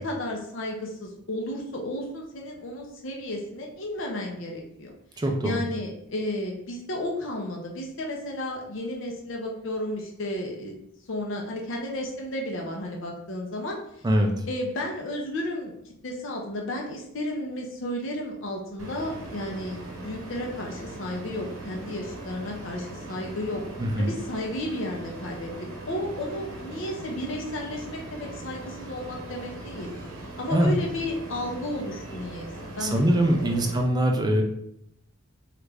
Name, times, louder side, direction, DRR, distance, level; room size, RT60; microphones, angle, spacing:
voice 1, 0.0-4.9 5.4-10.7 11.1-13.8 14.5-15.7 16.0-23.6 24.0-25.5 25.9-29.9 30.4-33.7, left 1 dB, 60° left, 0 dB, 0.6 m, -33 dB
voice 2, 5.2-5.6 14.0-14.4 23.8-24.1 30.5-30.8 32.8-34.4, right 1 dB, 20° right, 2 dB, 0.4 m, -23 dB
sound 1, 18.8-33.8, right 2 dB, 85° right, 0.8 m, -40 dB
3.1 x 2.4 x 3.3 m, 0.75 s
head